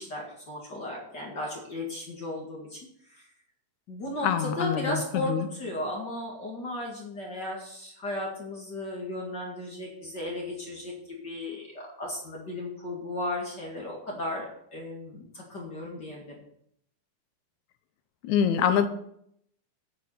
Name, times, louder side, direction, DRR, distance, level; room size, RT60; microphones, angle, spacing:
voice 1, 0.0-2.8 3.1-3.3 3.9-14.5 14.7-16.3, left 1 dB, 35° left, -1 dB, 2.3 m, -35 dB
voice 2, 4.2-5.5 18.2-18.9, left 8 dB, 75° left, 10 dB, 2.1 m, -25 dB
9.5 x 8.1 x 5.8 m, 0.70 s
omnidirectional pair, 3.5 m